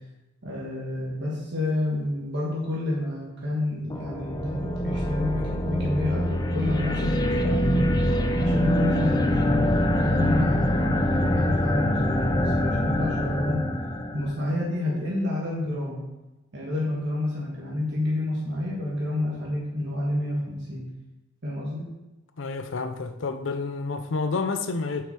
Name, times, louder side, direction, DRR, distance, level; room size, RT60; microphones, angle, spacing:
voice 1, 0.4-7.9 8.4-13.6 14.1-16.0 16.5-20.8 21.4-21.9, left 1 dB, 60° right, -4 dB, 1.7 m, -29 dB
sound 1, 3.9-14.4, left 1 dB, 20° left, 0.5 m, -24 dB
Telephone, 4.6-7.7 8.1-8.2, left 3 dB, 85° right, 1.8 m, -43 dB
voice 2, 22.4-25.1, left 4 dB, 75° left, 8 dB, 0.6 m, -29 dB
7.5 x 5.7 x 4.4 m, 1.1 s
head